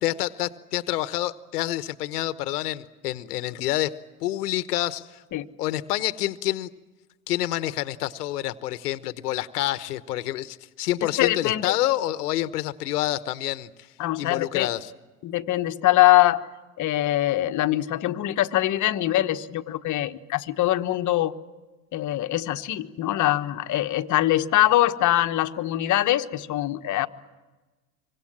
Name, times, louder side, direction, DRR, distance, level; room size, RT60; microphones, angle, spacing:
voice 1, 0.0-5.2 5.6-6.7 7.3-13.7 14.2-14.9, left 14 dB, 70° left, 13 dB, 1.2 m, -28 dB
voice 2, 11.0-11.7 14.0-14.7 15.2-16.4 16.8-21.3 21.9-27.1, left 15 dB, 40° left, 9 dB, 1.3 m, -23 dB
26.0 x 24.5 x 7.5 m, 1.2 s
hypercardioid pair, 90°, 47 cm